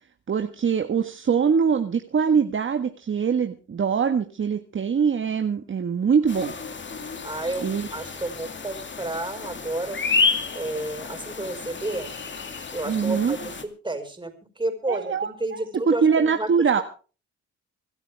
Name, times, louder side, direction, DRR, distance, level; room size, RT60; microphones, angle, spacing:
voice 1, 0.3-6.5 7.6-7.9 12.9-13.4 14.9-16.8, right 6 dB, 40° right, 6 dB, 1.6 m, -23 dB
sound 1, 6.3-13.6, left 4 dB, 40° left, 2.5 m, -30 dB
voice 2, 7.2-10.0 10.5-12.1 12.7-16.5, right 2 dB, 15° right, 7 dB, 5.1 m, -31 dB
25.5 x 12.5 x 3.5 m, 0.36 s
cardioid pair, 90°, 30 cm